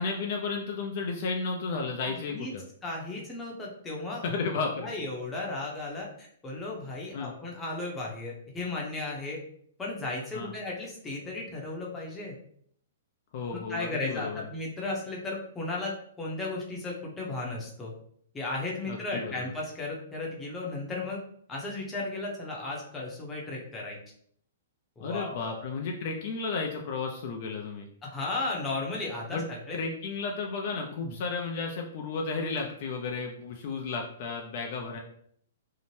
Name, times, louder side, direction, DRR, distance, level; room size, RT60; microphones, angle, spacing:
voice 1, 0.0-2.6 4.2-5.0 7.1-7.3 10.3-10.5 13.3-14.4 18.9-19.5 25.0-27.9 29.3-29.5 29.7-35.0, left 4 dB, 50° left, 1 dB, 0.4 m, -33 dB
voice 2, 2.1-2.5 2.8-4.2 4.8-9.4 9.8-12.4 13.5-15.9 16.2-17.9 18.3-21.2 21.5-24.0 25.0-25.6 28.0-29.8 31.0-31.1, left 2 dB, 10° left, -3 dB, 0.7 m, -35 dB
2.7 x 2.1 x 3.0 m, 0.65 s
hypercardioid pair, 150°, 0 cm